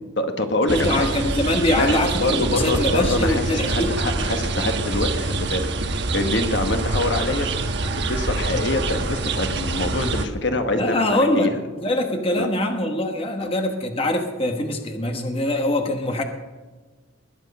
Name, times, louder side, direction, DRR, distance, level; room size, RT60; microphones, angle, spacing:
voice 1, 0.2-1.1 1.7-7.5 7.9-11.5 12.3-12.5 13.4-13.5, left 2 dB, 60° left, 6 dB, 1.3 m, -25 dB
voice 2, 0.7-4.4 10.8-16.2, left 1 dB, 25° left, 4 dB, 1.2 m, -23 dB
sound 1, 0.7-10.3, right 3 dB, 55° right, 1.1 m, -25 dB
20.5 x 9.2 x 5.4 m, 1.3 s
head